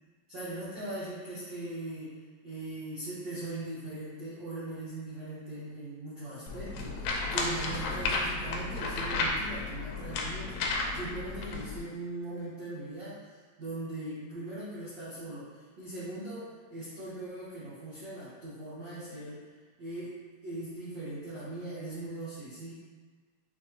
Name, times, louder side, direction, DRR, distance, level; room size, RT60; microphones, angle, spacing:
voice 1, 0.3-2.1 2.4-19.4 19.8-22.7, right 2 dB, 80° right, -10 dB, 1.0 m, -40 dB
sound 1, 6.5-11.8, left 3 dB, 90° left, 2.0 m, -33 dB
6.2 x 2.5 x 2.8 m, 1.4 s
omnidirectional pair, 3.4 m